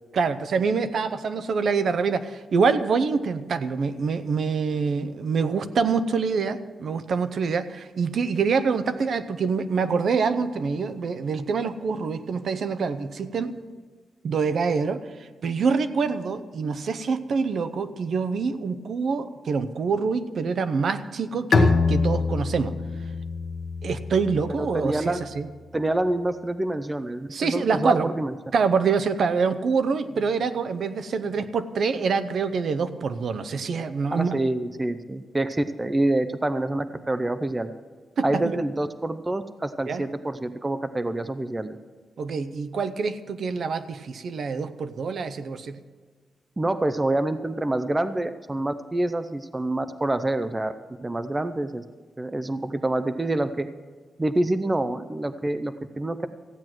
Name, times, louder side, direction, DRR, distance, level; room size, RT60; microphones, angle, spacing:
voice 1, 0.1-13.6 14.2-15.0 15.4-22.7 23.8-25.5 27.3-28.1 28.5-34.4 38.2-38.6 39.9-40.0 42.2-45.8, right 5 dB, 55° right, 12 dB, 0.7 m, -25 dB
Bowed string instrument, 21.5-25.0, left 4 dB, 45° left, 1.0 m, -24 dB
voice 2, 24.6-25.2 25.7-28.3 34.1-37.7 38.2-41.8 46.6-50.7 51.0-51.8 52.2-53.7 54.2-56.3, right 1 dB, 15° right, 11 dB, 0.4 m, -27 dB
15.0 x 9.2 x 6.1 m, 1.5 s
wide cardioid pair, 165°, 0 cm